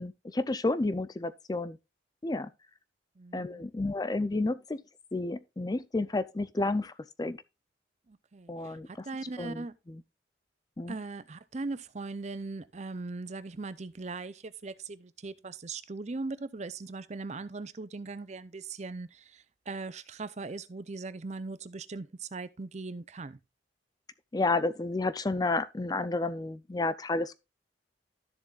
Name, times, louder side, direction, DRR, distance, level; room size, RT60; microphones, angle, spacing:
voice 1, 0.0-1.8 2.2-2.5 3.3-4.8 5.1-6.9 7.2-7.4 8.5-9.0 9.4-10.0 10.8-10.9 24.3-27.3, left 2 dB, 20° left, 0.4 m, -31 dB
voice 2, 3.2-3.7 8.1-9.7 10.9-23.4, right 3 dB, 35° right, 0.5 m, -39 dB
12.5 x 7.1 x 2.4 m
head